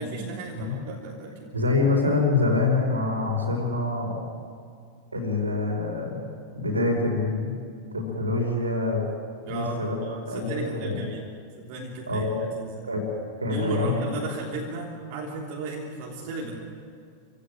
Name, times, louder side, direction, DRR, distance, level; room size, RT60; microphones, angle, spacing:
voice 1, 0.0-1.5 9.4-11.3 11.5-12.9 13.5-16.6, right 3 dB, 45° right, -2 dB, 3.3 m, -35 dB
voice 2, 1.5-4.2 5.1-6.3 6.5-7.5 7.9-9.0 9.5-10.0 10.3-11.0 12.1-12.4 12.9-13.1 13.4-13.9, left 3 dB, 80° right, 1 dB, 5.2 m, -25 dB
28.0 x 16.5 x 9.1 m, 2.2 s
figure-of-eight pair, 90°, 0 cm